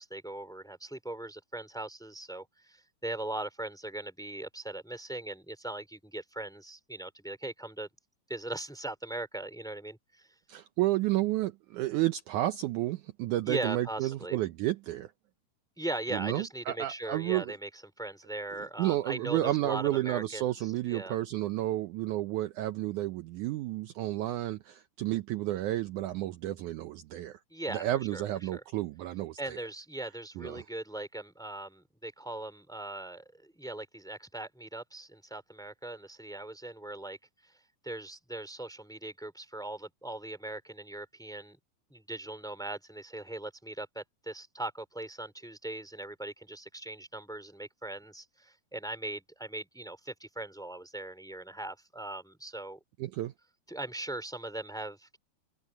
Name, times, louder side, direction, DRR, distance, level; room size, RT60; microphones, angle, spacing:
voice 1, 0.0-7.9 8.3-10.3 13.5-14.4 15.8-17.7 18.0-21.2 27.5-27.8 28.1-28.2 28.5-28.6 29.4-37.2 37.8-41.6 41.9-52.8 53.7-55.2, right 2 dB, ahead, 3.0 m, -40 dB
voice 2, 10.5-15.1 16.1-17.5 18.6-27.4 27.7-29.6 30.4-30.6 53.0-53.3, right 15 dB, 80° right, 1.8 m, -31 dB
open air
omnidirectional pair, 4.4 m